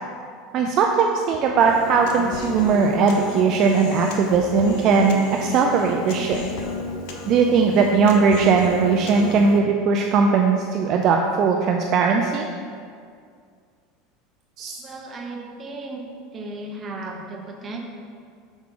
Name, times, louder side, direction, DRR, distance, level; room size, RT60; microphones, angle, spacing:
voice 1, 0.5-6.4 7.3-12.5 14.6-14.7, right 5 dB, 45° right, 2 dB, 0.4 m, -19 dB
Human voice, 1.6-9.6, left 3 dB, 70° left, 0.7 m, -33 dB
voice 2, 14.8-16.1 16.3-17.8, right 2 dB, 25° right, 1 dB, 0.8 m, -35 dB
6.1 x 4.7 x 3.7 m, 2.2 s
supercardioid pair, 135°, 0 cm